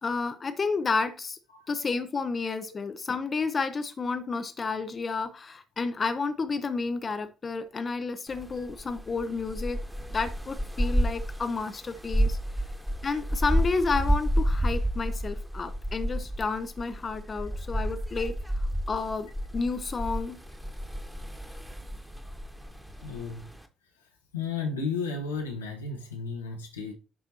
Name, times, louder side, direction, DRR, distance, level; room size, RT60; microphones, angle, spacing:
voice 1, 0.0-1.4 1.7-9.8 10.1-12.4 13.0-20.4, left 4 dB, 35° left, 0.7 m, -31 dB
sound 1, 8.3-23.7, equal, 5° right, 1.4 m, -31 dB
voice 2, 23.0-23.5 24.0-26.9, left 4 dB, 85° left, 1.1 m, -34 dB
11.0 x 4.5 x 2.8 m
figure-of-eight pair, 45°, 0 cm